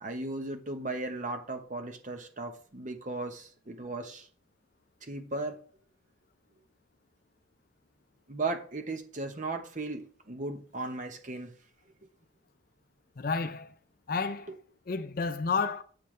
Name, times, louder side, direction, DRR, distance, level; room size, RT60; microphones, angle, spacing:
voice 1, 0.0-4.3 5.0-5.6 8.3-11.5, right 2 dB, 40° right, 1.1 m, -36 dB
voice 2, 13.2-13.7 14.1-14.5 14.9-15.8, left 4 dB, 45° left, 0.5 m, -30 dB
7.7 x 6.9 x 3.3 m
head